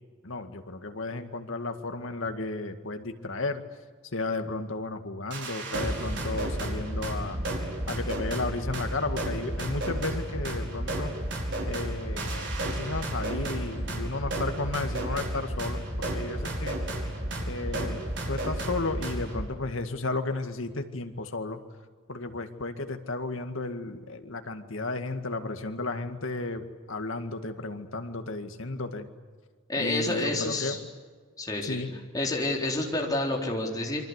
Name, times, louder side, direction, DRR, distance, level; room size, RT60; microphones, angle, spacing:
voice 1, 0.2-3.6 4.1-7.4 7.9-11.1 11.6-16.8 17.5-21.6 22.1-29.1 29.8-30.8 31.6-31.9, left 3 dB, 70° left, 7 dB, 2.1 m, -33 dB
sound 1, 5.3-19.5, right 1 dB, 55° right, 5.5 m, -32 dB
voice 2, 29.7-30.8 31.4-31.8 32.1-34.0, left 2 dB, 15° left, -1 dB, 4.0 m, -29 dB
27.5 x 24.5 x 8.3 m, 1.5 s
head